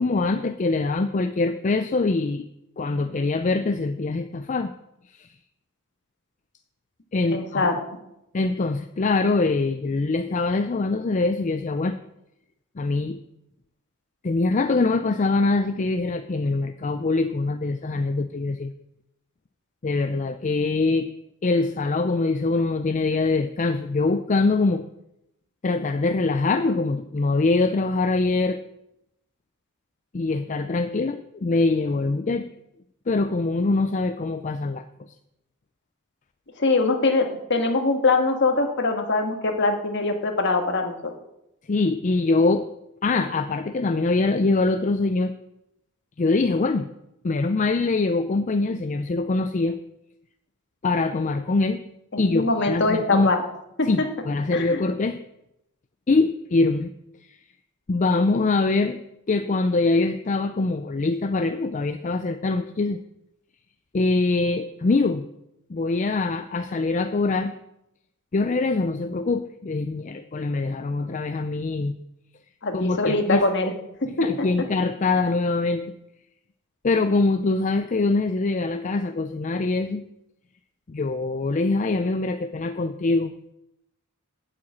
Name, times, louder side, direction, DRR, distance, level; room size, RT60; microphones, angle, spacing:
voice 1, 0.0-2.4 2.8-4.7 5.2-5.3 7.1-7.7 8.3-12.0 12.8-13.2 14.2-18.7 19.8-21.1 21.4-24.9 25.6-28.6 30.1-32.5 33.1-34.8 41.7-42.7 43.0-45.3 46.2-46.9 47.2-49.8 50.8-51.8 52.2-53.3 53.8-55.2 56.1-56.9 57.9-59.0 59.3-63.0 63.9-65.2 65.7-67.5 68.3-72.0 72.7-73.4 74.2-75.9 76.8-80.0 80.9-83.5, left 3 dB, 35° left, 9 dB, 0.4 m, -23 dB
voice 2, 7.3-7.8 36.6-41.0 52.1-53.4 53.8-53.9 54.5-54.8 72.6-73.7 74.2-74.5, left 3 dB, 55° left, 4 dB, 1.7 m, -22 dB
8.3 x 7.8 x 8.5 m, 0.85 s
head